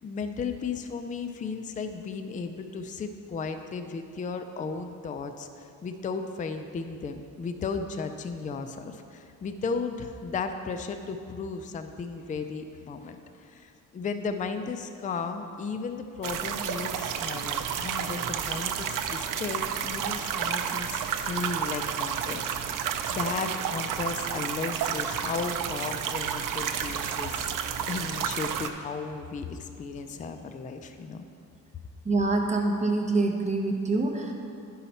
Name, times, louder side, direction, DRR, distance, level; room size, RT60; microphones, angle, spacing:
voice 1, 0.0-27.5 27.9-31.2, left 4 dB, 25° left, 7 dB, 0.4 m, -35 dB
sound 1, 16.2-28.7, right 8 dB, 80° right, 0.5 m, -31 dB
voice 2, 32.0-34.3, right 2 dB, 20° right, 1 dB, 0.9 m, -25 dB
9.9 x 5.6 x 4.2 m, 2.5 s
cardioid pair, 125°, 32 cm